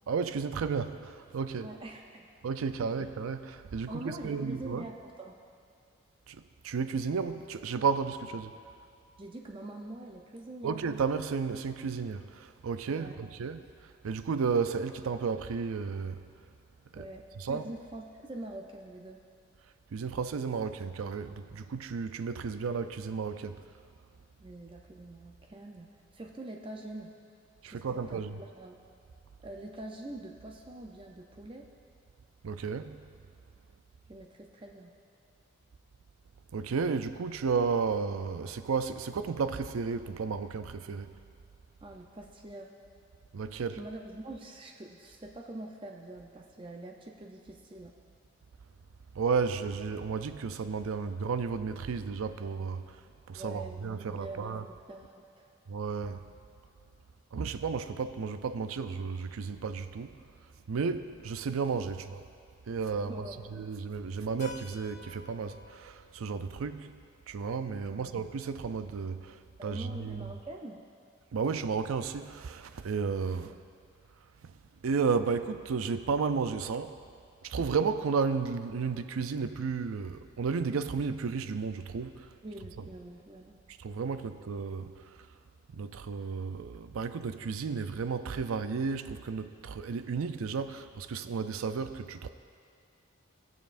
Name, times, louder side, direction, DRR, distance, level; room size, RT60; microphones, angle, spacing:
voice 1, 0.1-1.7 2.4-4.9 6.3-8.6 10.6-13.6 14.0-16.2 16.9-17.0 17.4-17.6 19.9-23.6 27.6-28.4 32.4-33.0 36.5-41.1 43.3-43.8 49.1-53.0 53.3-54.6 55.7-56.3 57.3-60.2 60.7-62.2 62.7-63.1 63.5-67.0 67.3-70.3 71.3-73.6 74.4-74.5 74.8-77.0 77.4-82.3 82.8-82.9 83.8-85.2 85.7-92.3, right 5 dB, 90° right, 10 dB, 0.4 m, -33 dB
voice 2, 1.6-2.3 3.9-5.4 9.2-10.8 13.0-13.3 16.9-19.2 24.4-27.1 27.7-28.8 29.4-31.7 34.1-35.0 41.8-42.7 43.7-47.9 53.3-55.5 63.0-63.5 67.9-68.1 69.6-70.8 73.3-73.6 82.4-83.6, right 1 dB, 25° right, 1 dB, 0.5 m, -44 dB
Keyboard (musical), 64.4-68.9, left 3 dB, 35° left, 0.7 m, -53 dB
19.0 x 6.9 x 2.5 m, 2.4 s
head